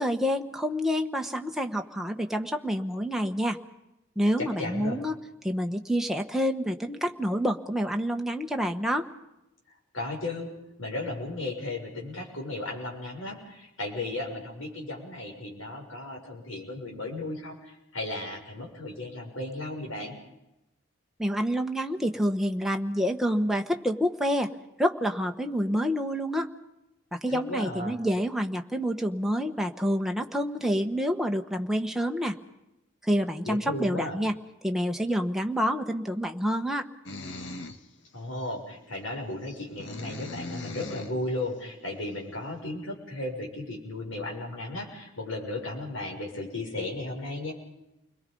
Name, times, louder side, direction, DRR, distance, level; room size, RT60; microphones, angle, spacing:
voice 1, 0.0-3.6 4.2-5.1 5.4-9.1 21.2-24.5 24.8-26.5 27.1-32.4 33.0-34.3 34.6-36.9, equal, ahead, 3 dB, 1.1 m, -28 dB
voice 2, 4.4-5.0 9.9-20.1 27.3-28.0 33.4-34.2 38.1-47.5, left 2 dB, 75° left, 0 dB, 6.5 m, -35 dB
sound 1, 37.1-37.9 38.4-38.5 39.4-41.2, left 2 dB, 60° left, 1.5 m, -40 dB
29.5 x 22.0 x 5.4 m, 0.92 s
head